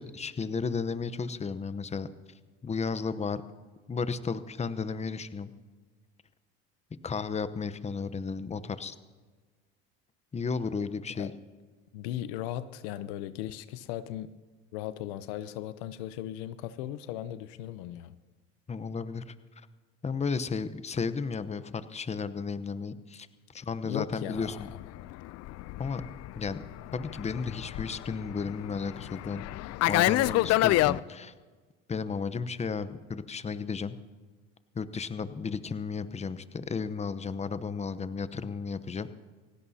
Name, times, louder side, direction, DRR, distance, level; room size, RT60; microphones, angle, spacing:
voice 1, 0.0-2.1 2.6-3.4 3.9-5.5 7.0-8.9 10.3-11.3 18.7-19.3 20.0-23.3 23.5-24.7 25.8-26.0 26.3-26.6 26.9-29.4 29.9-31.3 31.9-34.0 34.7-39.1, left 5 dB, 20° left, 13 dB, 0.9 m, -33 dB
voice 2, 11.9-14.3 14.7-18.2 23.8-24.6, left 12 dB, 80° left, 14 dB, 0.8 m, -37 dB
Fixed-wing aircraft airplane, 24.5-31.0, left 17 dB, 55° left, 0.4 m, -28 dB
29.5 x 16.5 x 2.8 m, 1.4 s
supercardioid pair, 80°, 31 cm